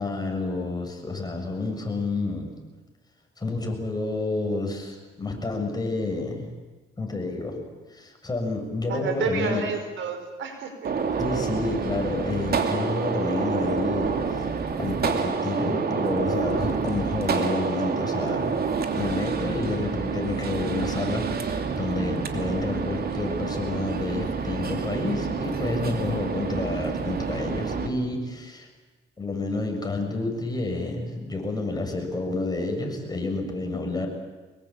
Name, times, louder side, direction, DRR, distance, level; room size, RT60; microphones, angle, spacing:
voice 1, 0.0-2.5 3.4-6.5 7.0-7.6 7.9-9.6 11.2-14.5 14.8-18.6 18.9-28.7 29.2-34.1, left 2 dB, 20° left, 3 dB, 6.8 m, -29 dB
voice 2, 8.9-10.9, right 4 dB, 75° right, 6 dB, 5.2 m, -30 dB
Gunshot gunfire, 10.8-27.9, right 5 dB, 50° right, 2.9 m, -28 dB
25.0 x 21.5 x 8.9 m, 1.3 s
cardioid pair, 90°, 20 cm